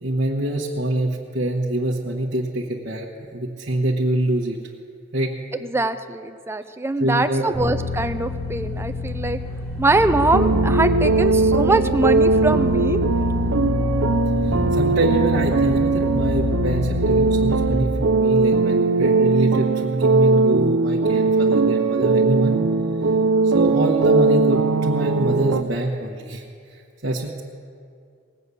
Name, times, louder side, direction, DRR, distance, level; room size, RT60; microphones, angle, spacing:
voice 1, 0.0-4.6 5.1-5.4 7.0-7.4 14.4-22.5 23.4-27.4, right 1 dB, 55° right, -4 dB, 1.2 m, -25 dB
voice 2, 5.6-9.4 9.8-13.0, right 2 dB, 10° right, 9 dB, 0.5 m, -22 dB
sound 1, 7.5-17.8, left 3 dB, 10° left, 1.3 m, -26 dB
sound 2, 10.3-25.6, right 4 dB, 90° right, 0.5 m, -20 dB
19.0 x 6.8 x 8.3 m, 2.3 s
head